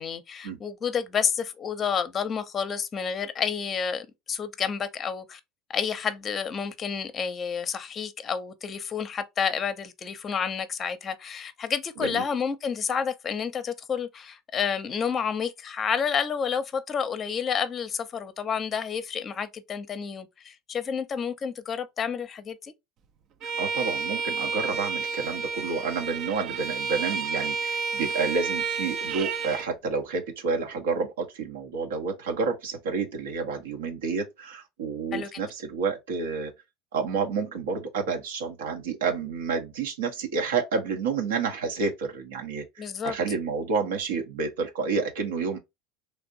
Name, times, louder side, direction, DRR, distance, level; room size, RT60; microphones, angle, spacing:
voice 1, 0.0-5.4 5.7-22.7 35.1-35.3 42.8-43.2, left 7 dB, 35° left, 0.6 m, -30 dB
Bowed string instrument, 23.4-29.7, right 4 dB, 50° right, 0.5 m, -30 dB
voice 2, 23.4-36.5 36.9-45.6, right 5 dB, 85° right, 0.8 m, -29 dB
3.3 x 2.5 x 2.4 m
hypercardioid pair, 90°, 0 cm